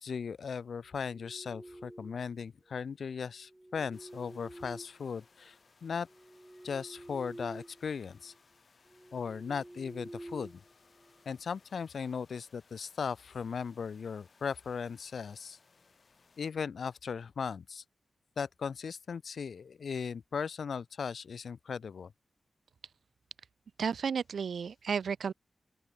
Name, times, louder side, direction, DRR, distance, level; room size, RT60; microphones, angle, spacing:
voice 1, 0.0-6.1 6.6-8.3 9.1-10.6 11.2-15.6 16.4-17.8 18.4-22.1, left 6 dB, 70° left, 1.1 m, -37 dB
sound 1, 0.9-2.4 3.4-5.5 6.0-7.8 8.1-8.4 8.9-11.2, right 1 dB, 10° right, 3.9 m, -49 dB
sound 2, 3.9-16.5, left 4 dB, 45° left, 5.5 m, -65 dB
voice 2, 23.8-25.3, right 6 dB, 75° right, 0.5 m, -32 dB
open air
wide cardioid pair, 175°, 0 cm